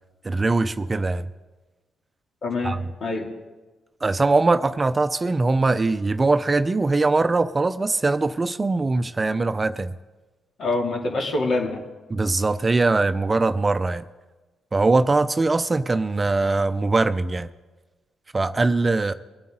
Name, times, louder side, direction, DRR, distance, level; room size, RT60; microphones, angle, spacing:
voice 1, 0.2-1.3 2.6-2.8 4.0-9.9 12.1-14.0 14.7-17.5 18.3-19.1, right 3 dB, 30° right, 12 dB, 0.6 m, -21 dB
voice 2, 2.4-3.3 10.6-11.8, left 2 dB, 60° left, 0 dB, 2.7 m, -25 dB
21.5 x 9.3 x 3.9 m, 1.2 s
hypercardioid pair, 45°, 0 cm